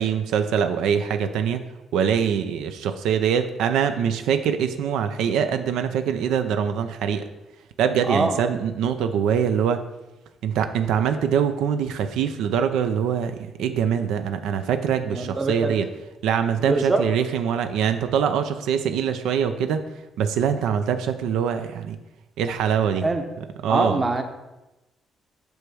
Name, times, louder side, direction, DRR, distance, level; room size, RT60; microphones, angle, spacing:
voice 1, 0.0-1.6 1.9-7.2 7.8-9.9 10.4-15.9 16.2-19.9 20.2-22.0 22.4-23.1 23.6-24.0, right 8 dB, 90° right, 9 dB, 0.5 m, -23 dB
voice 2, 8.1-8.4 15.1-15.7 16.6-17.0 23.0-23.2 23.7-24.2, right 3 dB, 20° right, 5 dB, 0.8 m, -23 dB
8.1 x 3.5 x 6.2 m, 1.0 s
cardioid pair, 130°, 0 cm